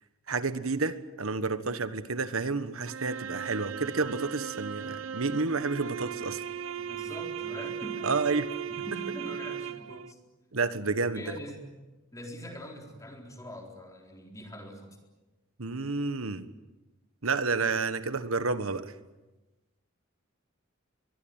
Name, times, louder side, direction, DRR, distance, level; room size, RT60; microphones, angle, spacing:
voice 1, 0.3-6.4 8.0-8.5 10.5-11.2 15.6-16.5 17.2-18.9, right 4 dB, 90° right, 12 dB, 1.5 m, -30 dB
sound 1, 2.8-10.1, right 8 dB, 70° right, 0.8 m, -37 dB
voice 2, 6.8-8.1 8.7-10.2 11.1-11.7 12.1-15.0, equal, 15° left, 2 dB, 4.1 m, -43 dB
23.5 x 22.5 x 9.0 m, 1.1 s
head